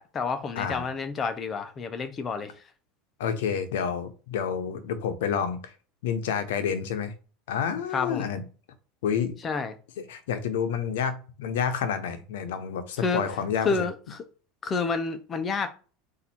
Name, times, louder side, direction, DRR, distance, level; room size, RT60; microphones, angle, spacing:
voice 1, 0.0-2.5 7.9-8.3 9.4-9.7 13.0-13.2 13.6-14.2 14.6-15.7, left 4 dB, 30° left, 0.9 m, -29 dB
voice 2, 3.2-5.7 6.0-7.1 7.5-8.4 9.0-9.3 10.0-13.8, left 7 dB, 85° left, 0.9 m, -29 dB
4.1 x 2.8 x 4.3 m
supercardioid pair, 115°, 0 cm